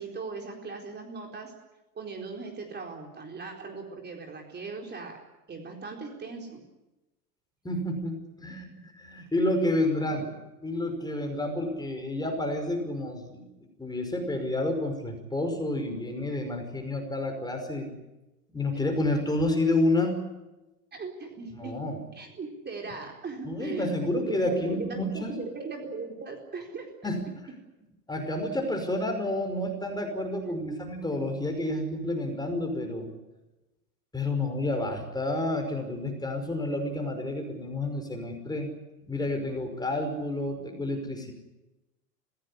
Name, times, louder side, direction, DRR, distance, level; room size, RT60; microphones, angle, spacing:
voice 1, 0.0-1.5 1.9-5.2 5.5-6.6 10.2-10.3 20.9-21.7 22.1-26.9 30.4-30.8, right 4 dB, 20° right, 1 dB, 4.3 m, -38 dB
voice 2, 7.6-8.7 9.0-10.3 10.6-13.4 13.8-17.9 18.5-20.2 21.6-22.0 23.5-25.3 27.0-27.2 28.1-33.1 34.1-38.7 39.1-41.3, left 1 dB, 10° left, 4 dB, 5.3 m, -29 dB
25.5 x 17.0 x 9.8 m, 1.0 s
figure-of-eight pair, 90°, 48 cm